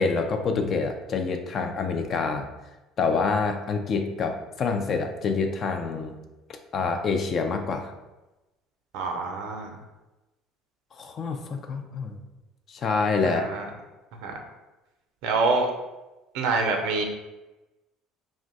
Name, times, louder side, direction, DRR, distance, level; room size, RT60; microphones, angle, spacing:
voice 1, 0.0-2.5 3.0-6.1 6.7-7.9 11.0-12.2 12.7-13.4, left 4 dB, 45° left, 5 dB, 0.4 m, -26 dB
voice 2, 8.9-9.8 13.2-13.7 14.2-14.3 15.2-15.7 16.3-17.0, right 3 dB, 70° right, 3 dB, 0.5 m, -26 dB
2.5 x 2.1 x 3.9 m, 1.0 s
hypercardioid pair, 75°, 0 cm